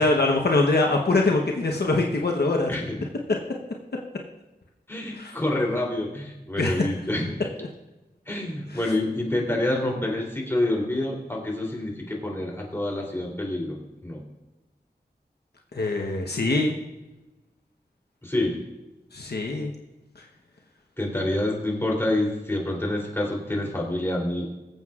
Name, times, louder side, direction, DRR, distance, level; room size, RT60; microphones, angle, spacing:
voice 1, 0.0-2.8 5.1-5.3 6.6-6.9 8.7-8.9 15.7-16.7 19.1-19.7, left 2 dB, 75° left, 0 dB, 1.0 m, -23 dB
voice 2, 4.9-7.3 8.3-14.2 18.2-18.6 21.0-24.5, left 1 dB, 15° left, -2 dB, 3.1 m, -27 dB
21.0 x 7.9 x 2.4 m, 1.1 s
wide cardioid pair, 65°, 17 cm